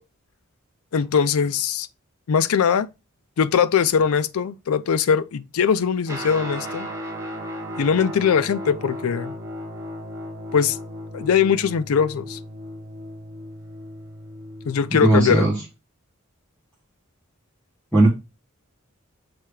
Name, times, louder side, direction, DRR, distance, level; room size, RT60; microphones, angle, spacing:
voice 1, 0.9-1.9 2.3-2.9 3.4-6.9 7.8-9.4 10.5-10.8 11.1-12.4 14.7-15.5, left 7 dB, 80° left, 0.4 m, -21 dB
Guitar, 6.1-15.7, equal, 15° right, 1.5 m, -35 dB
voice 2, 14.9-15.6 17.9-18.1, right 2 dB, 5° left, 1.4 m, -17 dB
7.1 x 3.3 x 4.8 m
head